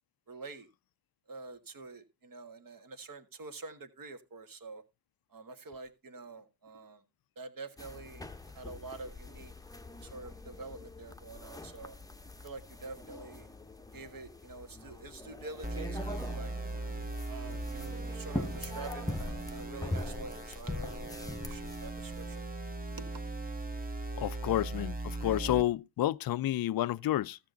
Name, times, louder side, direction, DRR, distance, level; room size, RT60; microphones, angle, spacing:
voice 1, 0.3-0.7 1.3-4.8 5.3-7.0 7.4-9.5 10.0-12.0 12.4-13.5 13.9-16.5 17.3-22.4 23.0-23.1, right 3 dB, 50° right, 1.6 m, -47 dB
sound 1, 7.8-22.4, left 2 dB, 10° left, 0.9 m, -43 dB
sound 2, 15.6-25.6, right 2 dB, 20° right, 1.3 m, -39 dB
voice 2, 24.2-27.4, left 14 dB, 55° left, 0.5 m, -30 dB
13.5 x 7.1 x 3.9 m
supercardioid pair, 55°, 45 cm